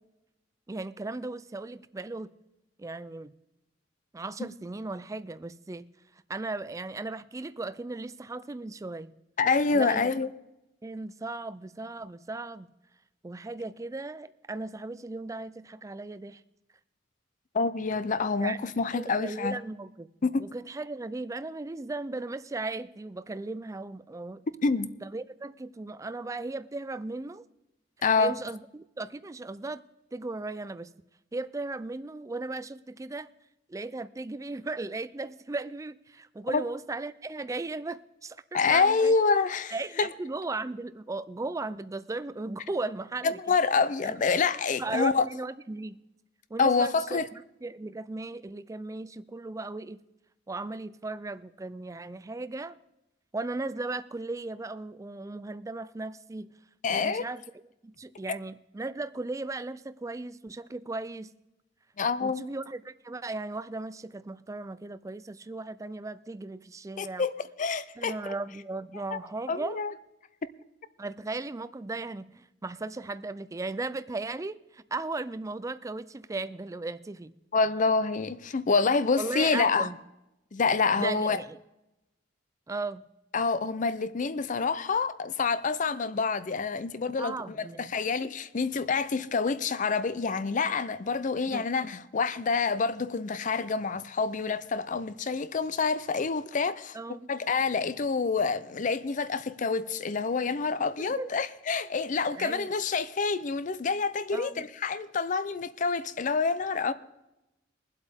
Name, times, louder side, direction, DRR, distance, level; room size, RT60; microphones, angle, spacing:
voice 1, 0.7-2.3 2.8-3.3 4.1-5.9 6.3-9.1 9.7-10.0 10.8-12.7 13.2-16.4 18.4-18.6 18.9-20.1 20.4-24.5 25.0-27.5 28.2-29.8 30.1-30.9 31.3-33.3 33.7-39.1 39.7-43.4 44.0-44.2 44.8-46.0 46.5-50.0 50.5-52.8 53.3-56.5 56.9-57.4 57.8-61.3 62.2-67.3 68.0-69.8 71.0-77.3 79.2-80.0 81.0-81.6 82.7-83.0 87.2-88.0 91.5-91.7 96.9-97.3 100.8-101.3 102.3-102.7 104.3-104.7, right 3 dB, 15° right, 0.4 m, -36 dB
voice 2, 9.4-10.3 17.5-19.6 20.2-20.5 24.6-24.9 28.0-28.4 36.5-36.6 38.5-40.1 43.2-45.2 46.6-47.3 56.8-57.2 62.0-62.5 67.0-67.3 67.6-68.2 69.1-69.2 69.5-69.9 77.5-79.9 80.5-81.4 83.3-97.0 97.3-106.9, left 4 dB, 40° left, 0.5 m, -27 dB
22.5 x 7.9 x 3.5 m
head